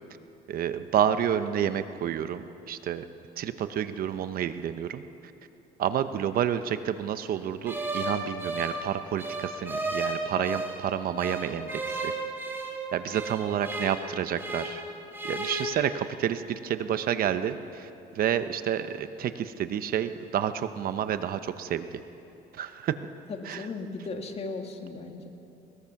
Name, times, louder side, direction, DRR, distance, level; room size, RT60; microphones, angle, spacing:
voice 1, 0.5-3.0 3.4-5.0 5.8-12.1 12.9-14.8 15.2-17.9 18.1-21.9 22.5-22.9 23.4-23.7, right 9 dB, 60° right, 11 dB, 0.9 m, -29 dB
sound 1, 7.7-10.8 11.2-14.9 15.1-15.7, right 2 dB, 15° right, 3.2 m, -34 dB
voice 2, 23.3-25.3, left 3 dB, 35° left, 4 dB, 2.1 m, -36 dB
21.5 x 20.5 x 5.9 m, 2.8 s
cardioid pair, 110°, 17 cm